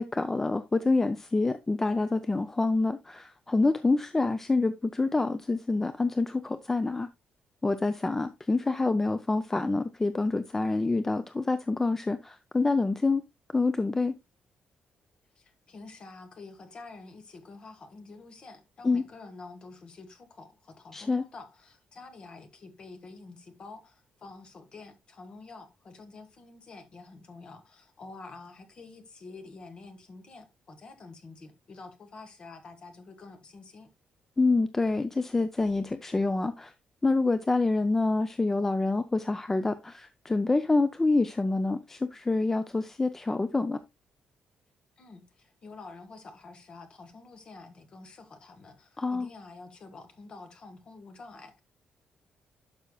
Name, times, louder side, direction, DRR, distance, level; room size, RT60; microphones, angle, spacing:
voice 1, 0.0-7.1 7.6-13.2 13.5-14.1 18.8-19.0 20.9-21.2 34.4-36.7 37.0-43.8 49.0-49.3, left 3 dB, 15° left, 0.4 m, -27 dB
voice 2, 15.4-33.9 45.0-51.6, left 3 dB, 35° left, 1.4 m, -48 dB
11.5 x 5.6 x 2.2 m
cardioid pair, 165°, 3 cm